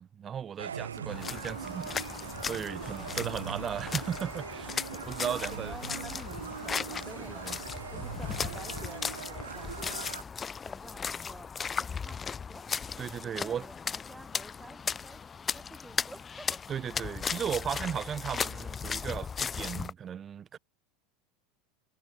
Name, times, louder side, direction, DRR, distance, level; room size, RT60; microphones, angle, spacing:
voice 1, 0.0-5.8 7.2-7.6 13.0-13.6 16.7-20.6, right 8 dB, 30° right, 1.9 m, -36 dB
sound 1, 0.6-10.2, right 7 dB, 85° right, 0.4 m, -41 dB
sound 2, 1.1-19.9, left 6 dB, 25° left, 2.4 m, -37 dB
voice 2, 2.8-3.8 5.3-10.3 10.6-12.7 13.2-15.2 15.5-16.7, right 2 dB, 10° right, 3.7 m, -50 dB
hypercardioid pair, 85°, 0 cm